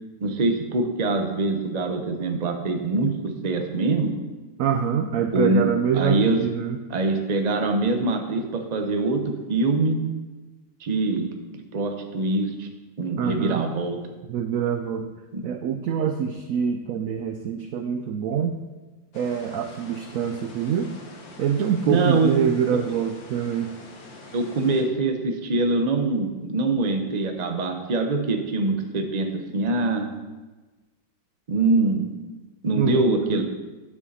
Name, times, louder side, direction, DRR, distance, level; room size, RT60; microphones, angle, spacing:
voice 1, 0.2-4.1 5.3-6.4 6.9-10.0 10.8-11.3 11.7-12.7 13.0-14.0 15.3-15.4 21.9-22.3 24.3-30.1 31.5-32.1 32.6-33.4, right 3 dB, 35° right, 4 dB, 0.7 m, -24 dB
voice 2, 4.6-6.8 13.2-13.6 14.3-15.1 15.4-18.5 19.1-20.9 21.4-23.7 32.8-33.4, right 7 dB, 75° right, 7 dB, 0.7 m, -25 dB
sound 1, 19.1-24.8, left 2 dB, 55° left, 1.7 m, -44 dB
9.5 x 7.2 x 4.2 m, 1.2 s
omnidirectional pair, 1.9 m